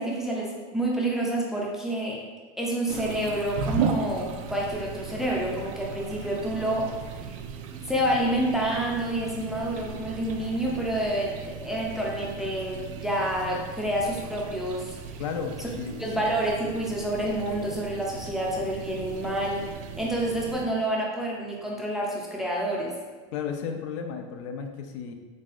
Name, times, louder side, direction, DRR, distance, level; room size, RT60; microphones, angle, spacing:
voice 1, 0.0-2.2 2.6-6.9 7.2-7.4 7.7-15.0 16.0-19.7 20.0-22.9, right 1 dB, 5° right, -3 dB, 0.3 m, -28 dB
sound 1, 2.9-20.7, right 6 dB, 85° right, 0.4 m, -36 dB
voice 2, 15.2-16.1 23.3-25.1, left 6 dB, 70° left, 5 dB, 0.5 m, -33 dB
4.0 x 3.6 x 2.4 m, 1.4 s
supercardioid pair, 170°, 16 cm